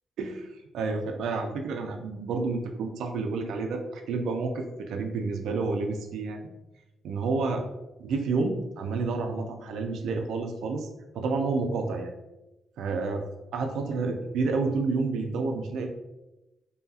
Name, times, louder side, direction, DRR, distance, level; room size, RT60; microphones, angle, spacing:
voice 1, 0.2-0.5 0.7-6.4 7.0-7.7 8.0-10.9 11.1-12.1 12.8-13.2 13.5-15.9, right 3 dB, 85° right, 4 dB, 0.4 m, -29 dB
2.7 x 2.4 x 2.6 m, 1.0 s
cardioid pair, 135°, 0 cm